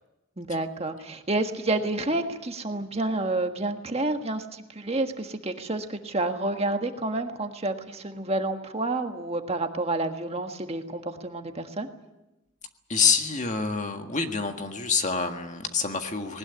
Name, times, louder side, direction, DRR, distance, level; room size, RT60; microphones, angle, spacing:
voice 1, 0.4-11.9, right 2 dB, 30° right, 5 dB, 1.6 m, -29 dB
voice 2, 12.9-16.4, left 5 dB, 35° left, 5 dB, 1.7 m, -26 dB
20.0 x 19.5 x 9.7 m, 0.96 s
head